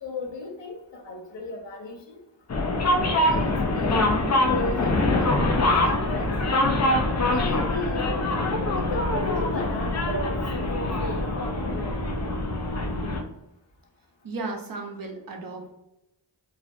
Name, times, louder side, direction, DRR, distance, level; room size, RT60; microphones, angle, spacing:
voice 1, 0.0-2.2 3.2-4.1 4.3-6.3 7.3-8.1 8.9-11.3, left 1 dB, 75° left, -1 dB, 0.8 m, -35 dB
sound 1, 2.5-13.2, left 2 dB, 40° left, 0.5 m, -24 dB
voice 2, 14.2-15.7, right 3 dB, 50° right, 2 dB, 0.7 m, -35 dB
2.5 x 2.1 x 2.5 m, 0.87 s
cardioid pair, 40°, 44 cm